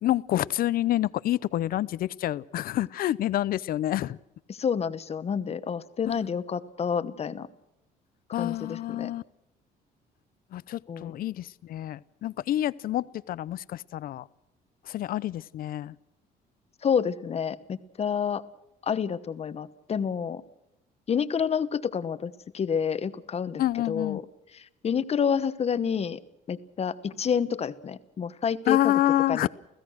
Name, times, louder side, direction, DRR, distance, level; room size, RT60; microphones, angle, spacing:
voice 1, 0.0-4.2 8.3-9.2 10.5-14.3 14.9-16.0 23.6-24.2 28.7-29.5, left 13 dB, 60° left, 19 dB, 0.7 m, -28 dB
voice 2, 4.5-7.5 8.4-9.1 10.9-11.1 16.8-18.4 18.8-20.4 21.1-24.2 24.5-26.2 26.5-28.9 29.3-29.5, left 7 dB, 40° left, 13 dB, 1.1 m, -29 dB
29.5 x 16.0 x 6.3 m, 0.88 s
cardioid pair, 110°, 17 cm